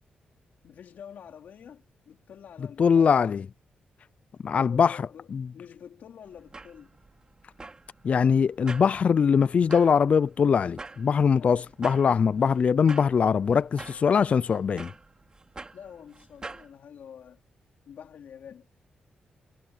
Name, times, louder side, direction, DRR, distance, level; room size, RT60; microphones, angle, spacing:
voice 1, 0.6-3.3 4.5-6.9 11.4-11.6 15.7-17.4 17.8-18.7, left 8 dB, 75° left, 3.8 m, -47 dB
voice 2, 2.6-3.5 4.4-5.5 8.0-14.9, left 6 dB, 50° left, 0.3 m, -22 dB
sound 1, 6.2-16.7, right 3 dB, 25° right, 4.0 m, -46 dB
cardioid pair, 115°, 3 cm